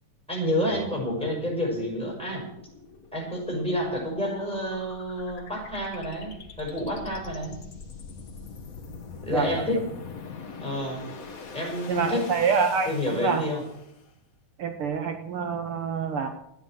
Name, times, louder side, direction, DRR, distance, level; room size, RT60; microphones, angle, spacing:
voice 1, 0.3-2.5 3.1-6.3 6.6-7.6 9.2-9.9 10.6-11.0 11.5-12.3 12.9-13.6, left 1 dB, ahead, -2 dB, 5.6 m, -29 dB
sound 1, 0.7-14.1, left 5 dB, 50° left, 1.0 m, -43 dB
voice 2, 9.3-9.8 11.9-13.4 14.6-16.3, right 6 dB, 75° right, 6 dB, 1.2 m, -27 dB
13.0 x 9.8 x 7.6 m, 0.78 s
omnidirectional pair, 3.9 m